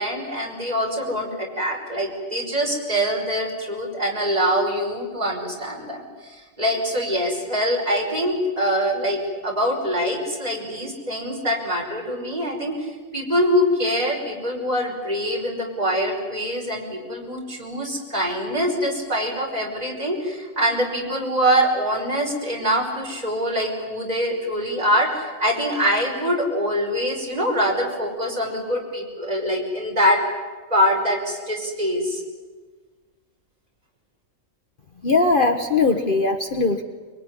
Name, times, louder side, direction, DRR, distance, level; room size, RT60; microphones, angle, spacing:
voice 1, 0.0-30.2 30.7-32.2, equal, 30° right, 0 dB, 5.6 m, -24 dB
voice 2, 35.0-36.8, left 3 dB, 40° left, 5 dB, 1.3 m, -20 dB
24.0 x 23.5 x 9.8 m, 1.4 s
omnidirectional pair, 1.5 m